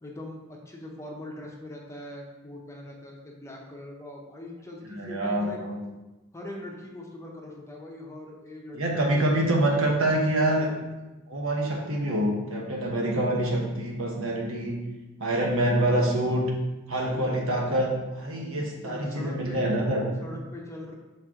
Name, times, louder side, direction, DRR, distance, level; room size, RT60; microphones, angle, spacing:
voice 1, 0.0-5.6 6.3-9.8 17.0-17.5 18.6-19.7 20.2-20.9, left 1 dB, 15° left, -1 dB, 0.9 m, -42 dB
voice 2, 4.9-5.8 8.7-10.7 11.3-14.8 15.2-16.5 16.9-20.1, right 1 dB, 70° right, 0 dB, 1.1 m, -26 dB
6.1 x 4.4 x 3.7 m, 1.1 s
head